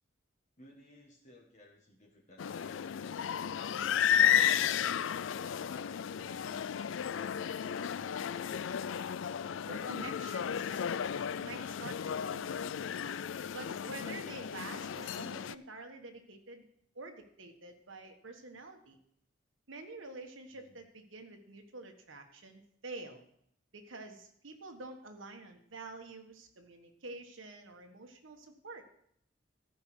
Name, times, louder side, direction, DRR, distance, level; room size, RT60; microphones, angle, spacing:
voice 1, 0.6-2.8 3.5-6.9 7.2-8.2 20.5-20.8, left 1 dB, 40° left, -1 dB, 1.6 m, -58 dB
sound 1, 2.4-15.6, left 9 dB, 80° left, 0.4 m, -33 dB
voice 2, 9.7-10.8 11.4-12.7 13.5-16.7 16.9-19.0 19.7-23.2 23.7-28.8, right 3 dB, 90° right, 4 dB, 1.4 m, -48 dB
14.5 x 5.4 x 6.3 m, 0.68 s
head